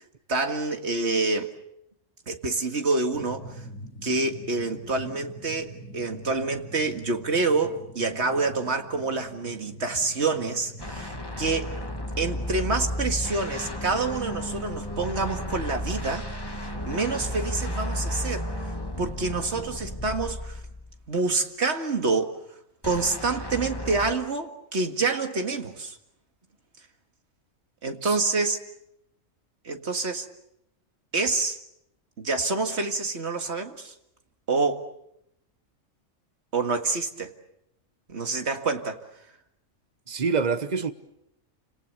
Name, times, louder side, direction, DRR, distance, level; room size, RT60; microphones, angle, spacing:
voice 1, 0.3-1.5 2.3-3.6 4.0-11.8 12.2-18.5 19.0-20.6 21.1-22.3 22.8-26.0 27.8-28.6 29.6-30.3 31.1-31.6 32.2-33.9 34.5-34.9 36.5-37.3 38.1-39.0, right 3 dB, 55° right, 2.2 m, -27 dB
sound 1, 3.1-19.0, equal, 85° left, 4.1 m, -46 dB
sound 2, 10.8-21.1 22.8-24.1, left 1 dB, 15° left, 2.4 m, -33 dB
voice 2, 40.1-40.9, right 5 dB, 35° right, 1.2 m, -26 dB
29.5 x 27.0 x 6.8 m
omnidirectional pair, 1.4 m